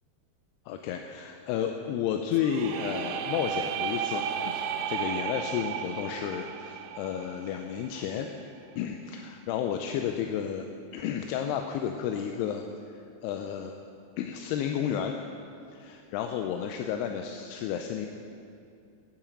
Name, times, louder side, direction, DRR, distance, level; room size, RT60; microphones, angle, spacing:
voice 1, 0.7-8.3 8.8-10.7 10.9-12.6 13.2-13.7 14.2-15.2 15.7-18.1, left 8 dB, 85° left, 4 dB, 2.6 m, -32 dB
sound 1, 2.3-8.2, right 8 dB, 80° right, 2.4 m, -34 dB
9.0 x 8.7 x 8.6 m, 2.5 s
omnidirectional pair, 4.8 m